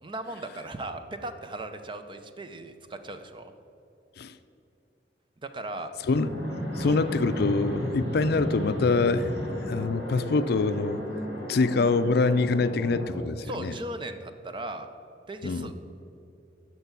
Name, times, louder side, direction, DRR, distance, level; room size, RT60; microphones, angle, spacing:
voice 1, 0.0-3.5 5.4-5.9 6.8-7.0 13.4-14.9 15.3-15.7, right 2 dB, 30° right, 8 dB, 0.7 m, -37 dB
Fixed-wing aircraft airplane, 6.1-13.2, equal, 75° right, 2.9 m, -34 dB
voice 2, 6.8-9.4 9.7-11.0 11.5-13.7 15.4-15.7, left 3 dB, 65° left, 13 dB, 0.4 m, -25 dB
12.5 x 4.5 x 8.2 m, 2.7 s
head